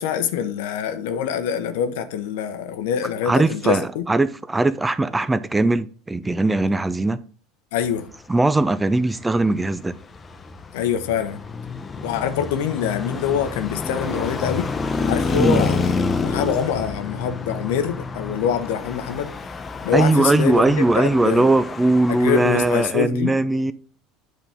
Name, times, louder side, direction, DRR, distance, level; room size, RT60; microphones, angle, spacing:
voice 1, 0.0-4.1 7.7-8.1 10.7-11.4 12.0-14.7 15.0-19.3 19.8-21.5 22.1-23.3, left 8 dB, 70° left, 0.8 m, -25 dB
voice 2, 3.2-7.2 8.3-10.0 15.3-15.7 19.9-23.7, right 2 dB, 15° right, 0.5 m, -20 dB
Traffic noise roadway noise, 9.1-22.9, left 4 dB, 25° left, 0.8 m, -28 dB
9.3 x 4.0 x 3.5 m
hypercardioid pair, 75°, 0 cm